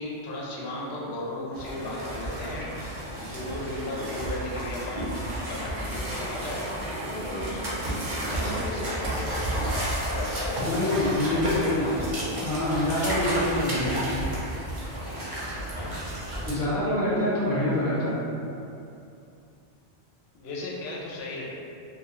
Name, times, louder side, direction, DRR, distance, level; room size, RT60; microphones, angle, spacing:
voice 1, 0.0-2.9 3.2-6.7 7.3-12.3 15.7-16.0 20.4-21.4, left 1 dB, 75° left, -4 dB, 0.8 m, -36 dB
sound 1, 1.5-16.5, right 1 dB, 40° right, 0.5 m, -32 dB
voice 2, 10.6-11.9 12.4-14.4 16.4-18.2, left 1 dB, 30° left, -11 dB, 0.9 m, -26 dB
2.3 x 2.2 x 2.9 m, 2.6 s
omnidirectional pair, 1.1 m